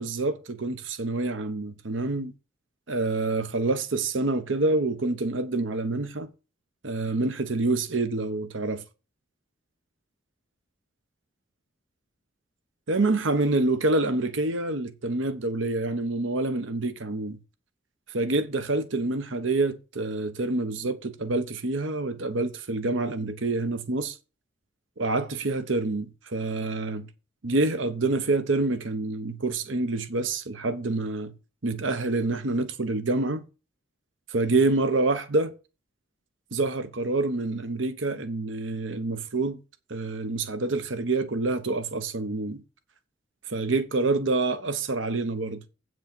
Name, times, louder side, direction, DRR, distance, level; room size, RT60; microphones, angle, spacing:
voice 1, 0.0-2.3 2.9-6.3 6.8-8.8 12.9-17.4 18.1-24.1 25.0-27.1 27.4-31.3 31.6-33.4 34.3-35.5 36.5-39.6 39.9-42.6 43.5-45.6, right 2 dB, 75° right, 1.0 m, -27 dB
8.5 x 6.3 x 6.1 m
head